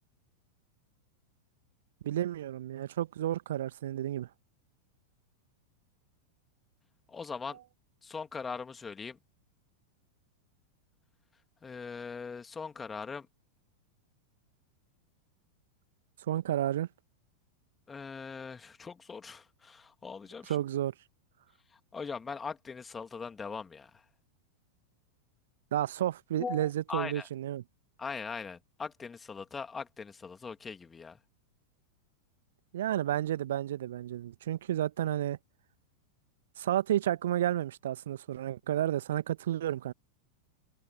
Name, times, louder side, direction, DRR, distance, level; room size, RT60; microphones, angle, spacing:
voice 1, 2.0-4.3 16.3-16.9 20.5-20.9 25.7-27.6 32.7-35.4 36.6-39.9, right 12 dB, 60° right, 1.4 m, -31 dB
voice 2, 7.1-7.6 8.0-9.2 11.6-13.3 17.9-20.6 21.7-24.0 26.4-27.3 28.0-31.2, left 5 dB, 15° left, 2.6 m, -41 dB
figure-of-eight pair, 90°, 0 cm